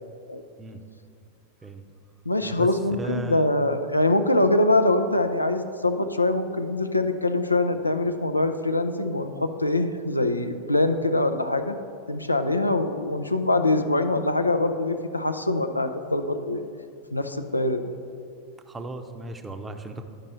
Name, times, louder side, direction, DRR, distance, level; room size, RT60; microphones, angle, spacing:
voice 1, 2.3-11.7 12.1-16.6 17.1-17.8, left 2 dB, 85° left, 8 dB, 0.5 m, -24 dB
voice 2, 3.0-3.5 18.7-20.1, right 1 dB, 15° right, 6 dB, 0.7 m, -36 dB
12.0 x 5.3 x 4.2 m, 2.4 s
figure-of-eight pair, 90°, 0 cm